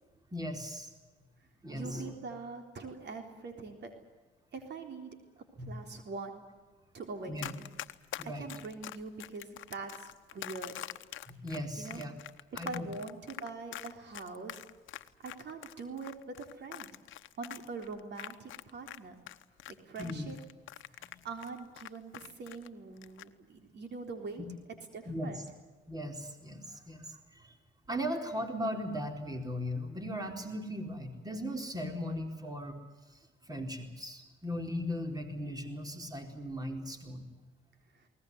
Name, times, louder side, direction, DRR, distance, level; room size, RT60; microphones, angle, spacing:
voice 1, 0.3-0.9 1.6-2.1 5.6-5.9 7.3-7.5 8.2-8.5 11.3-12.1 12.6-12.9 20.0-20.3 21.0-21.1 25.1-25.5 25.9-27.5 27.9-32.8 33.4-37.3, equal, 20° right, 5 dB, 4.3 m, -38 dB
voice 2, 1.7-3.9 4.5-5.2 5.6-6.4 6.9-7.7 8.2-10.8 11.8-12.0 12.5-14.6 15.2-16.9 17.4-19.2 19.9-20.4 20.9-24.4 24.9-25.4, right 4 dB, 60° right, 5 dB, 3.8 m, -43 dB
Run, 7.4-19.0 19.3-22.7 23.0-23.3, left 13 dB, 75° left, 1.0 m, -44 dB
22.0 x 19.0 x 9.6 m, 1.3 s
cardioid pair, 90°, 20 cm